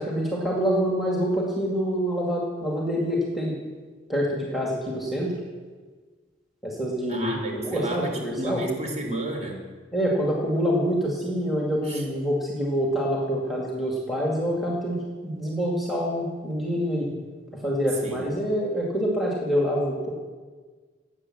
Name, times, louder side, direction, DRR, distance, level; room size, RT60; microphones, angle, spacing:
voice 1, 0.0-3.6 4.1-5.3 6.6-8.6 9.9-17.1 17.6-20.1, equal, ahead, -3 dB, 2.0 m, -26 dB
voice 2, 7.1-9.7 11.9-12.0 18.0-18.3, right 2 dB, 35° right, 1 dB, 3.4 m, -32 dB
17.5 x 8.5 x 7.5 m, 1.5 s
head